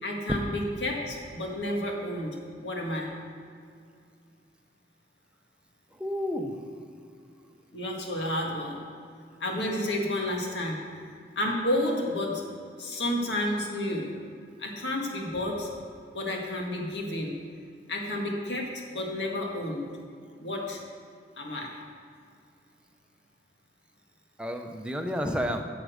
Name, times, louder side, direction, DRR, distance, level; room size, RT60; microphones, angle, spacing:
voice 1, 0.0-3.1 7.7-8.8 9.4-10.8 11.4-12.4 12.8-14.1 14.6-15.7 16.1-17.3 17.9-19.9 20.4-20.8 21.4-21.7, left 1 dB, 85° left, 0 dB, 1.8 m, -31 dB
voice 2, 6.0-6.5 24.4-25.6, equal, 5° right, 3 dB, 0.7 m, -30 dB
9.8 x 7.4 x 6.5 m, 2.3 s
head